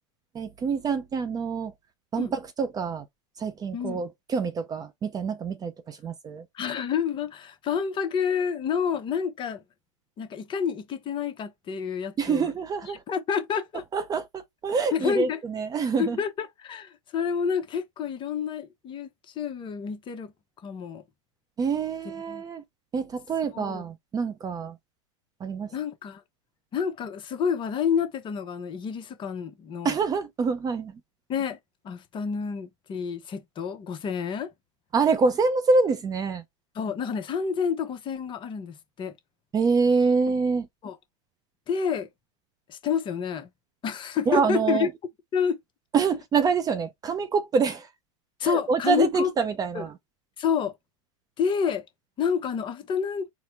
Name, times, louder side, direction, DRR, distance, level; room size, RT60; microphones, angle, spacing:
voice 1, 0.3-1.7 2.1-3.0 3.4-6.4 12.2-13.0 13.9-16.2 21.6-22.6 22.9-24.8 25.4-25.7 29.8-30.9 34.9-36.4 39.5-40.7 44.3-44.9 45.9-47.9 48.4-49.9, right 5 dB, 20° right, 0.6 m, -26 dB
voice 2, 6.5-9.6 10.2-12.5 12.8-13.8 14.9-15.4 16.0-20.3 20.6-21.0 22.3-22.4 23.5-23.8 25.7-26.2 26.7-30.0 31.3-31.6 31.8-34.5 36.7-39.1 40.8-41.0 41.7-42.1 42.7-43.5 43.8-44.9 45.3-45.6 48.4-49.3 49.7-49.9 50.4-50.7 51.4-51.8 52.2-53.3, left 7 dB, 30° left, 0.9 m, -29 dB
4.3 x 2.1 x 4.4 m
hypercardioid pair, 115°, 17 cm